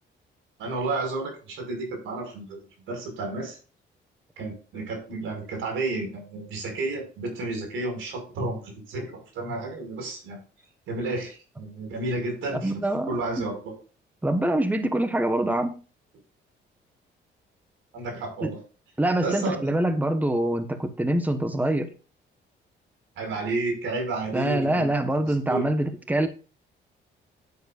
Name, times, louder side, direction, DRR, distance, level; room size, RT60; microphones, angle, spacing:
voice 1, 0.6-2.6 2.9-3.6 4.4-10.4 10.9-12.7 13.0-13.7 17.9-18.6 19.2-19.7 23.2-24.9 25.1-25.7, right 2 dB, 80° right, 3 dB, 5.5 m, -31 dB
voice 2, 12.6-13.1 13.4-13.5 14.2-15.8 18.4-18.5 19.0-21.9 24.3-26.3, right 1 dB, 10° right, 9 dB, 1.2 m, -25 dB
10.0 x 9.7 x 2.5 m, 0.36 s
cardioid pair, 90°, 20 cm